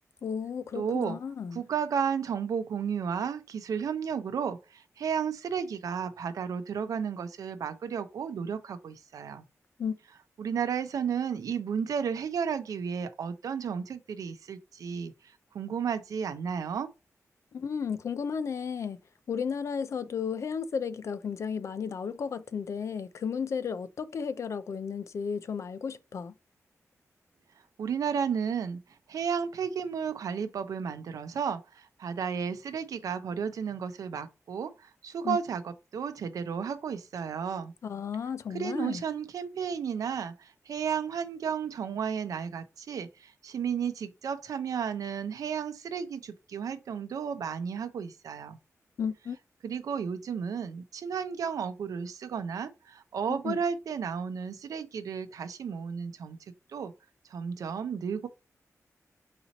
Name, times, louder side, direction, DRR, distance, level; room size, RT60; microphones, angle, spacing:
voice 1, 0.2-1.6 9.8-10.0 17.5-19.0 19.3-26.3 35.2-35.4 37.8-39.0 49.0-49.4 53.4-53.6, left 6 dB, 60° left, 0.4 m, -33 dB
voice 2, 0.7-1.2 1.5-9.5 10.4-16.9 27.8-37.7 38.5-48.6 49.6-56.4 56.7-56.9 57.3-58.3, right 7 dB, 90° right, 0.6 m, -33 dB
4.1 x 2.9 x 3.9 m
wide cardioid pair, 160°, 6 cm